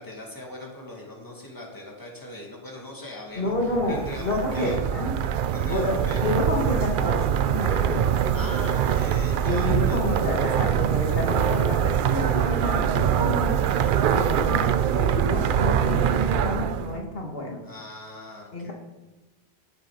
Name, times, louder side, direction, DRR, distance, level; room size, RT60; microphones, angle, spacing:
voice 1, 0.0-4.8 5.5-6.3 8.3-10.2 17.6-18.7, left 1 dB, 20° left, -1 dB, 2.3 m, -40 dB
voice 2, 3.3-5.2 5.7-5.9 6.2-8.4 9.5-13.6 14.1-17.6 18.5-18.7, left 2 dB, 60° left, -1 dB, 2.0 m, -29 dB
sound 1, 3.5-17.0, right 9 dB, 60° right, 0.6 m, -24 dB
11.5 x 8.1 x 5.0 m, 1.1 s
omnidirectional pair, 1.1 m